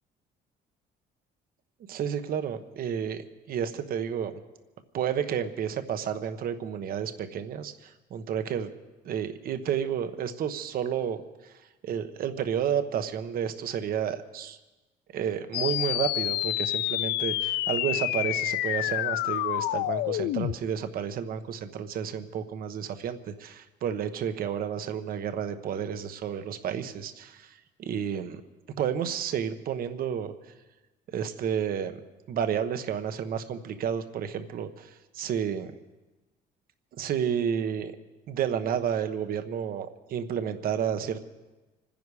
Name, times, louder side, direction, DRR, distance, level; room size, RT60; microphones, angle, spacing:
voice 1, 1.9-4.3 4.9-8.7 9.0-11.2 11.4-11.5 11.8-14.6 15.1-28.4 28.8-30.3 31.1-32.0 32.3-35.7 37.0-37.9 38.3-41.2, right 8 dB, 60° right, 9 dB, 1.1 m, -31 dB
sound 1, 15.5-20.5, left 15 dB, 80° left, 0.4 m, -28 dB
26.5 x 10.5 x 4.9 m, 1.1 s
cardioid pair, 110°, 17 cm